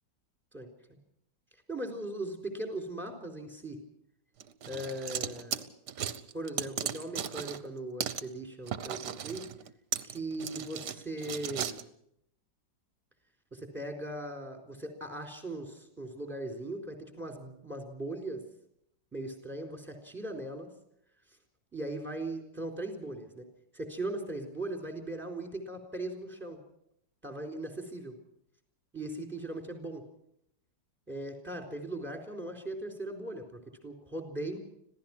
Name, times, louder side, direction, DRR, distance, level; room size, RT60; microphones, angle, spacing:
voice 1, 0.5-1.0 1.7-3.8 4.7-5.6 6.3-9.5 10.0-11.8 13.5-18.4 19.1-20.7 21.7-23.5 23.7-26.6 27.2-28.2 28.9-30.0 31.1-34.6, right 1 dB, 5° right, 3 dB, 3.9 m, -39 dB
sound 1, 4.4-7.7 8.0-8.2 8.7-11.8, right 9 dB, 65° right, 1.5 m, -36 dB
26.0 x 16.5 x 6.1 m, 0.74 s
omnidirectional pair, 2.0 m